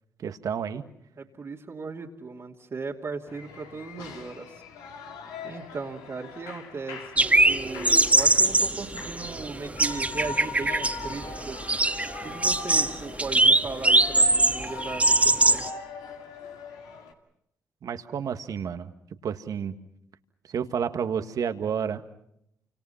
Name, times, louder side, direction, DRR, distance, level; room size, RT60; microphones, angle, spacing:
voice 1, 0.2-0.8 17.8-18.9 19.2-19.8 20.5-22.0, right 7 dB, 65° right, 9 dB, 1.7 m, -30 dB
voice 2, 1.2-4.6 5.4-11.6 12.2-15.6, right 4 dB, 45° right, -3 dB, 2.7 m, -37 dB
Shout / Cheering, 3.3-17.1, left 5 dB, 85° left, 2.3 m, -41 dB
sound 1, 7.2-15.7, right 2 dB, 20° right, 2.0 m, -22 dB
29.0 x 26.5 x 5.8 m, 0.75 s
supercardioid pair, 55°, 7 cm